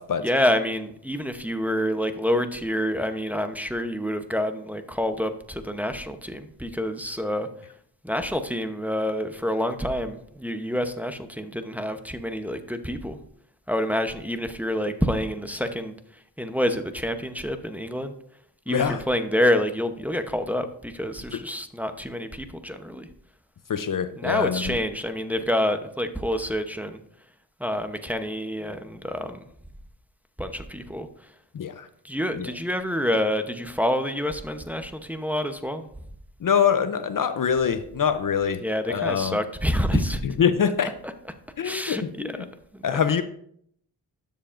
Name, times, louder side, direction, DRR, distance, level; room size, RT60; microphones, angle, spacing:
voice 1, 0.2-7.5 8.0-13.2 13.7-15.9 16.4-18.1 18.7-23.1 24.2-27.0 27.6-29.5 30.4-31.3 32.0-35.9 38.6-40.2 41.6-42.4 42.7-43.0, equal, 5° right, 0.8 m, -27 dB
voice 2, 18.7-19.0 23.7-24.8 31.5-31.9 32.3-32.5 36.4-38.6 38.9-39.4 39.9-40.9 41.6-42.5 42.8-43.2, left 7 dB, 50° left, 0.6 m, -24 dB
12.5 x 6.9 x 2.6 m
cardioid pair, 60°, 43 cm